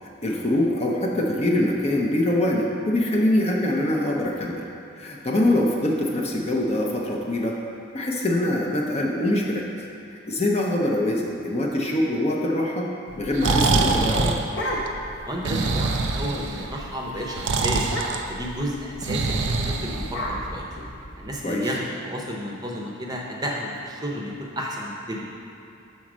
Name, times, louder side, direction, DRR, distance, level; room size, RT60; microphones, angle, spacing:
voice 1, 0.0-4.6 5.0-7.6 7.9-9.7 10.1-12.9 13.2-14.4 21.4-21.7, left 1 dB, 30° left, -1 dB, 0.6 m, -24 dB
Breathing, 13.1-20.5, right 3 dB, 60° right, 0.4 m, -25 dB
sound 1, 14.3-15.2 15.6-15.7 16.0-16.3 16.6-16.8 17.1-17.3 17.8-18.4 19.3-21.4, equal, 55° left, 1.0 m, -33 dB
voice 2, 15.2-17.8 18.3-20.7 21.2-25.2, equal, 20° right, -2 dB, 0.7 m, -32 dB
6.3 x 4.1 x 6.1 m, 2.8 s
head